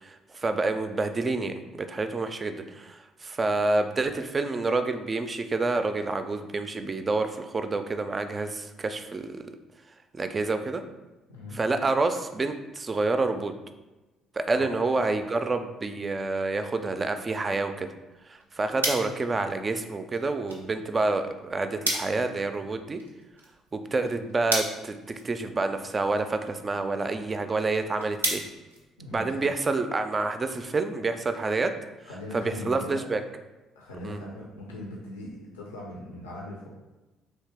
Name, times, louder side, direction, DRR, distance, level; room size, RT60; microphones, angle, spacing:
voice 1, 0.0-9.5 10.1-10.8 11.5-13.5 14.5-17.9 18.3-23.0 23.7-28.4 29.1-31.8 32.3-33.2 34.0-34.2, right 3 dB, 30° right, 8 dB, 0.3 m, -28 dB
sound 1, 18.1-29.5, right 1 dB, 90° right, 0.5 m, -37 dB
voice 2, 29.0-29.5 32.1-33.1 33.8-36.7, left 1 dB, 75° left, -3 dB, 0.5 m, -40 dB
3.2 x 2.7 x 3.2 m, 1.1 s
figure-of-eight pair, 50°, 0 cm